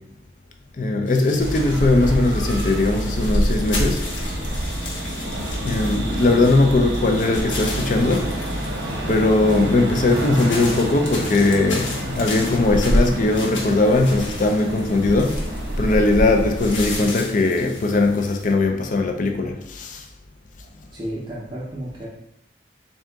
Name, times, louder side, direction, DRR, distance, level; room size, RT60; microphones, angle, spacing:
voice 1, 0.8-4.0 5.6-8.2 9.1-11.9 12.2-15.4 15.8-20.0, left 2 dB, 40° left, 4 dB, 0.4 m, -19 dB
sound 1, 1.1-18.5, left 3 dB, 75° left, 0.9 m, -36 dB
sound 2, 1.4-17.0, equal, 65° right, 0.8 m, -26 dB
voice 2, 20.9-22.1, right 1 dB, 25° right, -7 dB, 0.6 m, -32 dB
3.7 x 2.7 x 3.4 m, 0.78 s
head